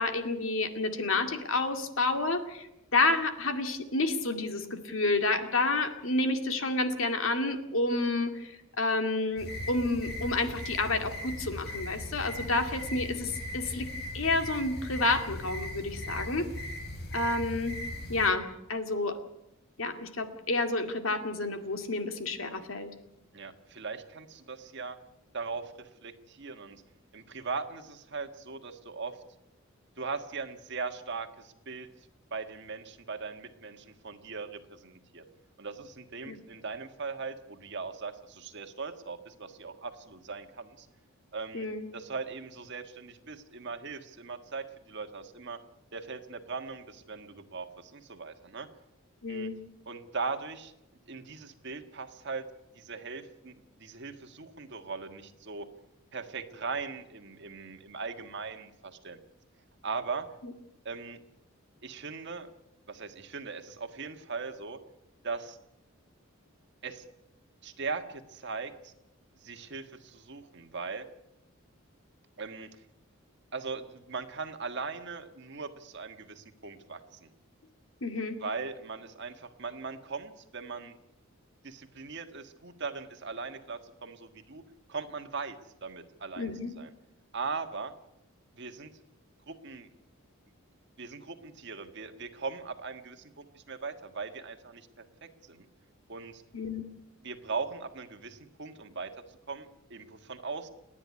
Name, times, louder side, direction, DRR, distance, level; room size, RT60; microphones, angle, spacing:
voice 1, 0.0-2.7 2.9-13.9 14.1-16.5 17.1-17.8 18.1-19.1 19.8-22.9 36.3-36.4 41.5-41.9 49.2-49.6 60.4-60.5 78.0-78.4 86.4-86.7 96.5-96.8, left 2 dB, 70° left, 7 dB, 2.2 m, -29 dB
sound 1, 9.4-18.3, left 1 dB, 50° left, 3.6 m, -39 dB
voice 2, 23.3-25.0 25.3-26.8 27.1-29.2 30.0-31.9 32.3-35.2 35.6-40.9 41.3-41.7 41.9-45.6 45.9-48.7 49.3-49.5 49.8-50.7 51.1-52.4 52.7-55.7 56.1-59.2 59.8-60.3 60.8-61.2 61.8-62.5 62.9-64.8 65.2-65.6 66.8-67.0 67.6-68.9 69.4-71.1 72.4-72.8 73.5-77.3 78.4-81.0 81.6-84.6 84.9-86.9 87.3-87.9 88.6-88.9 89.5-89.9 91.0-95.7 96.1-96.4 97.2-99.1 99.5-100.7, right 4 dB, 55° right, 7 dB, 1.7 m, -39 dB
29.5 x 10.0 x 9.7 m, 0.90 s
head